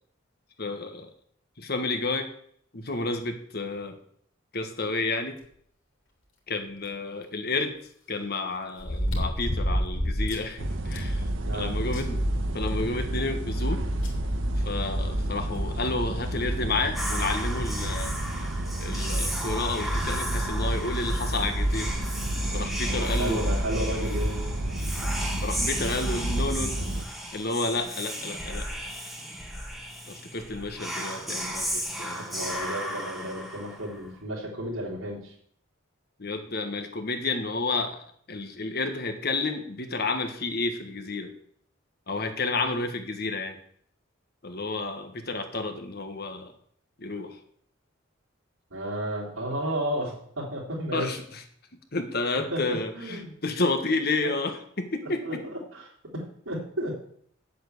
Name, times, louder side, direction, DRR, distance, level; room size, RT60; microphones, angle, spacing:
voice 1, 0.6-1.1 1.6-2.3 2.7-4.0 4.5-5.4 6.5-7.7 8.1-11.3 11.5-12.2 12.5-13.8 14.6-18.1 18.8-21.9 22.5-23.4 25.4-26.8 27.3-28.7 30.1-32.5 36.2-38.0 38.3-41.3 42.1-43.6 44.4-46.5 47.0-47.4 50.9-51.4 51.9-55.4, left 3 dB, 50° left, 7 dB, 1.5 m, -31 dB
sound 1, 6.8-6.9 8.8-10.5 10.9-11.0 11.5-11.6 11.9-13.0 14.0-14.1 15.6-15.7 16.2-16.3 17.1-17.3 18.6-18.7 18.9-19.0 20.7-21.0 21.7-21.8, equal, 70° left, 3.1 m, -29 dB
sound 2, 10.6-27.0, right 1 dB, 65° right, 1.1 m, -29 dB
Whispering, 16.9-34.1, equal, ahead, 1.5 m, -35 dB
voice 2, 22.8-24.4 32.2-35.3 48.7-51.1 52.4-53.3 55.0-55.4 55.7-57.0, right 1 dB, 85° right, -7 dB, 3.7 m, -33 dB
9.1 x 7.9 x 8.1 m, 0.65 s
head